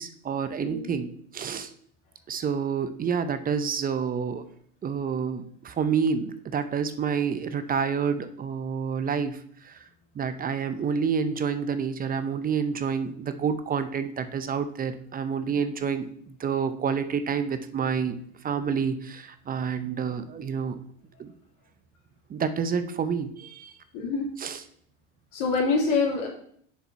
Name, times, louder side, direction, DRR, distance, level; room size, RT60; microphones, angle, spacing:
voice 1, 0.0-1.7 2.3-4.4 4.8-9.8 10.1-18.2 18.4-20.8 21.2-21.3 22.3-23.7 24.4-24.6, right 6 dB, 25° right, 11 dB, 0.6 m, -28 dB
voice 2, 0.6-1.0 23.9-24.3 25.3-26.3, left 4 dB, 65° left, -3 dB, 2.8 m, -25 dB
7.0 x 4.7 x 4.1 m, 0.63 s
supercardioid pair, 100°, 34 cm